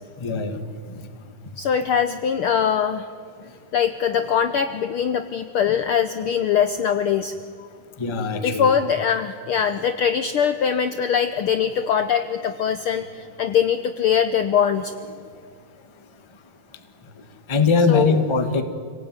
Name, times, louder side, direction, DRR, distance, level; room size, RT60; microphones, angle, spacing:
voice 1, 0.2-0.6 8.0-8.7 17.5-18.6, left 4 dB, 30° left, 7 dB, 0.5 m, -21 dB
voice 2, 1.6-3.1 3.7-7.3 8.4-14.9 17.9-18.2, left 8 dB, 90° left, 10 dB, 1.2 m, -22 dB
27.5 x 18.0 x 9.6 m, 2.2 s
omnidirectional pair, 3.5 m